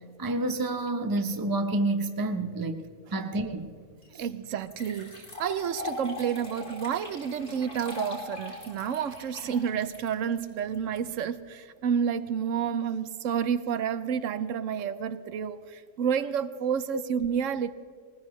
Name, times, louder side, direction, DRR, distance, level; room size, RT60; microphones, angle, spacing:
voice 1, 0.2-2.8 3.1-3.7 4.1-4.2, right 2 dB, 20° right, 0.7 m, -29 dB
sound 1, 4.0-4.1 4.7-11.0, left 3 dB, 40° left, 3.8 m, -40 dB
voice 2, 4.2-17.7, right 7 dB, 70° right, 0.9 m, -30 dB
21.0 x 19.5 x 3.2 m
omnidirectional pair, 1.5 m